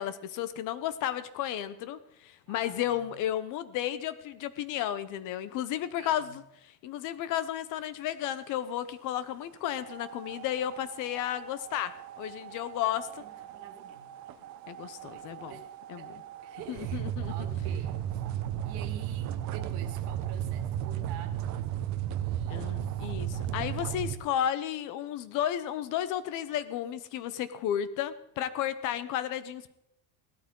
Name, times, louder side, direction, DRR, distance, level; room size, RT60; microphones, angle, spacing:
voice 1, 0.0-13.2 14.7-15.5 15.9-16.0 16.7-17.3 22.5-29.7, left 11 dB, 45° left, 14 dB, 0.7 m, -33 dB
voice 2, 2.5-3.1 6.0-6.4 13.1-14.1 15.0-15.7 16.0-18.2 18.6-23.1, right 9 dB, 55° right, 7 dB, 2.0 m, -49 dB
sound 1, 9.7-24.1, right 10 dB, 40° right, 0.9 m, -35 dB
17.0 x 13.0 x 3.7 m, 0.83 s
cardioid pair, 165°, 45 cm